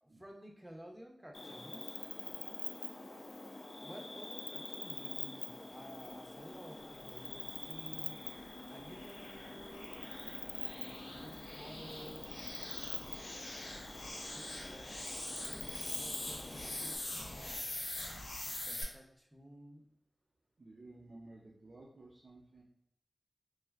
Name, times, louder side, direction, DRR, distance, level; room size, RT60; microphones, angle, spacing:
voice 1, 0.0-2.1 3.8-8.2 8.7-10.0 10.6-12.3 14.3-14.9 15.3-17.7 18.4-19.8, equal, 10° right, 1 dB, 0.5 m, -54 dB
Cricket, 1.3-17.0, left 2 dB, 65° left, 0.4 m, -45 dB
sound 1, 7.3-18.8, left 1 dB, 85° left, 0.8 m, -45 dB
voice 2, 20.6-22.6, right 2 dB, 65° right, -3 dB, 0.4 m, -54 dB
3.2 x 2.5 x 2.3 m, 0.79 s
wide cardioid pair, 85°, 0 cm